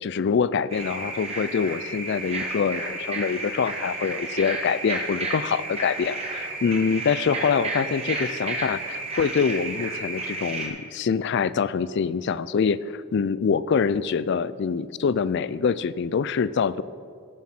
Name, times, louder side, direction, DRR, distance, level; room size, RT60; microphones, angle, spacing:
voice 1, 0.0-16.8, left 6 dB, 50° left, 17 dB, 0.3 m, -25 dB
sound 1, 0.7-10.7, right 2 dB, 30° right, 1.5 m, -32 dB
17.0 x 7.2 x 4.4 m, 2.3 s
head